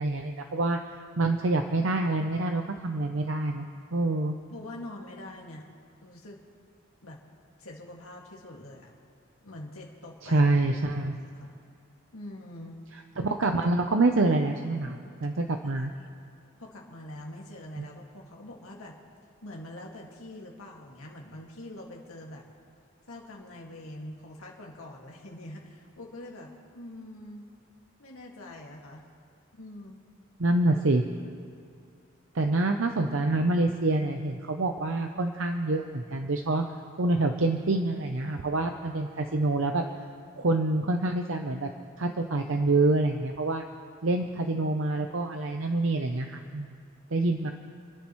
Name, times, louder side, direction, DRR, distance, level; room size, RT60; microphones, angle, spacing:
voice 1, 0.0-4.3 10.2-11.2 13.2-15.9 17.8-17.9 30.4-31.0 32.3-36.6 37.0-39.8 40.4-41.7 42.0-43.6 44.0-46.8 47.1-47.5, right 2 dB, 65° right, 4 dB, 0.7 m, -26 dB
voice 2, 4.5-5.7 6.0-6.4 7.0-7.2 7.6-8.9 9.4-11.6 12.1-12.8 15.7-15.9 16.6-18.9 19.4-22.4 23.1-27.5 28.0-29.0 29.5-30.0, left 1 dB, 85° left, -1 dB, 2.1 m, -44 dB
29.5 x 10.5 x 3.1 m, 2.4 s
head